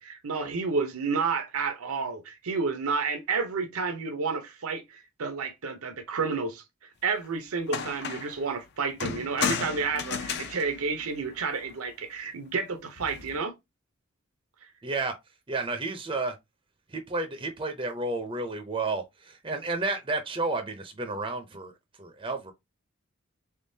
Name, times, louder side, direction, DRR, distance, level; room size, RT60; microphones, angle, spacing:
voice 1, 0.0-6.6 7.0-13.5 14.6-14.7, right 4 dB, 85° right, 0.7 m, -30 dB
sound 1, 7.2-7.3 7.7-8.4 9.0-11.7 13.0-13.4, left 6 dB, 50° left, 0.6 m, -34 dB
voice 2, 14.8-15.1 15.5-16.3 16.9-21.7 22.0-22.5, right 3 dB, 25° right, 0.5 m, -31 dB
3.6 x 3.5 x 2.7 m
head